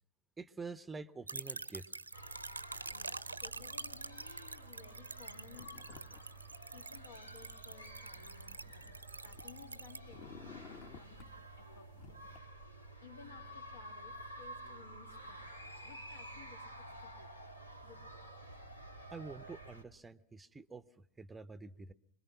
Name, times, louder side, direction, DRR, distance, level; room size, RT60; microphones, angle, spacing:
voice 1, 0.4-1.9 19.1-21.9, right 4 dB, 10° right, 15 dB, 0.8 m, -47 dB
sound 1, 1.3-10.0, right 3 dB, 80° right, 0.9 m, -46 dB
sound 2, 2.1-19.8, right 1 dB, 85° left, 2.3 m, -51 dB
voice 2, 2.9-6.3 6.7-9.0 9.2-11.3 11.6-12.2 13.0-15.5 15.8-17.3 17.8-18.3, left 5 dB, 70° left, 3 dB, 2.9 m, -58 dB
sound 3, 5.5-6.2 6.5-7.5 8.1-9.7 10.0-11.3 11.9-12.4, left 7 dB, 40° left, 1.9 m, -54 dB
26.5 x 21.5 x 6.1 m, 0.70 s
figure-of-eight pair, 90°, 0 cm